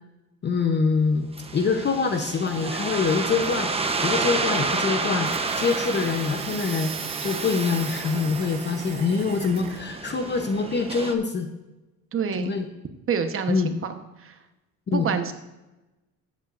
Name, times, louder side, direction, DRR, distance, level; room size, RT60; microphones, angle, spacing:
voice 1, 0.4-1.3 1.5-3.7 4.0-5.3 5.6-6.9 7.2-11.5 12.4-12.7 13.5-13.7 14.9-15.1, left 5 dB, 30° left, 5 dB, 0.8 m, -24 dB
sound 1, 1.4-11.1, right 3 dB, 20° right, 0.8 m, -30 dB
sound 2, 5.2-9.8, right 12 dB, 75° right, 0.7 m, -39 dB
voice 2, 12.1-12.5 13.1-14.3 14.9-15.3, right 6 dB, 40° right, 8 dB, 1.1 m, -27 dB
13.5 x 8.4 x 2.5 m, 1.0 s
cardioid pair, 120°, 34 cm